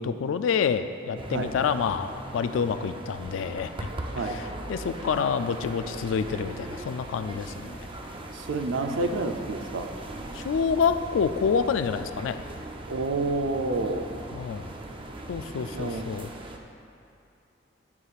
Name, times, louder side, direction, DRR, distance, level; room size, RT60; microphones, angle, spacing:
voice 1, 0.0-3.7 4.2-7.9 10.3-12.4 14.3-14.7 15.3-16.3, left 6 dB, 85° left, 11 dB, 0.3 m, -28 dB
sound 1, 1.2-16.6, right 1 dB, 25° right, 0.5 m, -39 dB
voice 2, 8.3-9.9 12.9-14.1 15.7-16.1, right 3 dB, 90° right, 6 dB, 0.5 m, -29 dB
9.7 x 7.5 x 2.4 m, 2.5 s
head